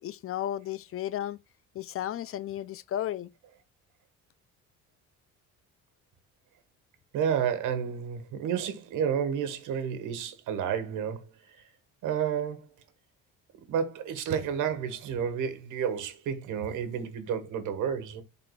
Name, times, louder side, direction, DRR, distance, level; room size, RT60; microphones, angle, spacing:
voice 1, 0.0-1.4 1.7-3.3, left 11 dB, 45° left, 0.4 m, -34 dB
voice 2, 7.1-11.2 12.0-12.7 13.7-18.2, right 8 dB, 75° right, 1.5 m, -30 dB
11.0 x 3.9 x 2.3 m
cardioid pair, 100°, 31 cm